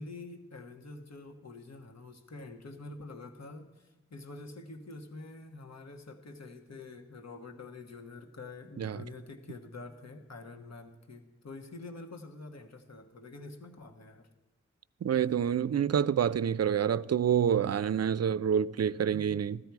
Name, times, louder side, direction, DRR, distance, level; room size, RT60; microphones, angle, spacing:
voice 1, 0.0-14.3 19.1-19.2, left 3 dB, 65° left, 1.3 m, -46 dB
voice 2, 15.0-19.6, right 8 dB, 60° right, 0.5 m, -27 dB
15.5 x 13.0 x 4.7 m
wide cardioid pair, 70°, 29 cm